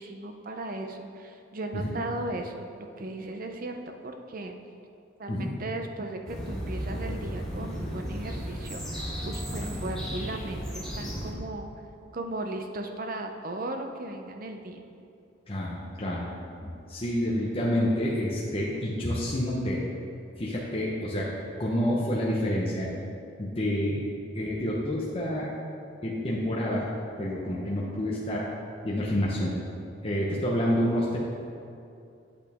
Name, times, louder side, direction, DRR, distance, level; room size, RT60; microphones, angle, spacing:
voice 1, 0.0-2.7 3.0-3.8 4.0-4.5 5.2-11.7 12.1-14.8, right 2 dB, 50° right, 4 dB, 0.7 m, -36 dB
sound 1, 6.3-11.3, equal, ahead, 2.0 m, -34 dB
voice 2, 15.5-16.2 16.6-19.8 20.4-21.3 21.6-22.9 23.4-24.0 24.3-25.5 26.0-26.9 27.2-28.5 28.8-29.5 30.0-31.2, equal, 30° left, -5 dB, 1.0 m, -28 dB
8.3 x 8.3 x 3.6 m, 2.5 s
head